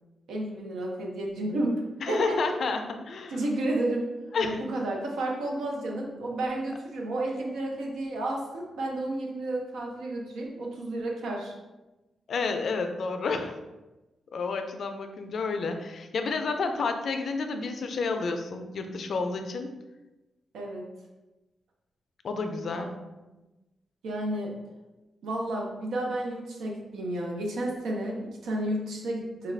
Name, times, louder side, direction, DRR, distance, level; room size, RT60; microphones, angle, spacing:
voice 1, 0.3-1.8 2.1-2.4 3.3-4.1 4.4-11.5 20.5-20.8 22.8-22.9 24.0-24.5 25.2-29.5, right 1 dB, 85° right, 0 dB, 0.7 m, -31 dB
voice 2, 2.0-3.4 4.3-4.6 12.3-13.6 14.3-19.7 22.2-23.0, left 4 dB, 65° left, 6 dB, 0.4 m, -30 dB
3.3 x 2.4 x 3.2 m, 1.1 s
cardioid pair, 80°, 0 cm